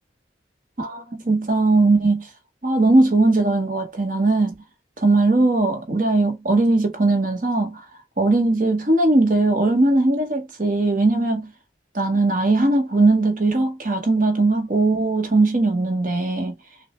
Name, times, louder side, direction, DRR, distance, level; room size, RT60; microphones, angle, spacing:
voice 1, 0.8-2.3 2.6-4.5 5.0-7.8 8.2-11.5 11.9-16.5, right 2 dB, 45° right, 1.0 m, -19 dB
6.0 x 2.1 x 3.1 m
head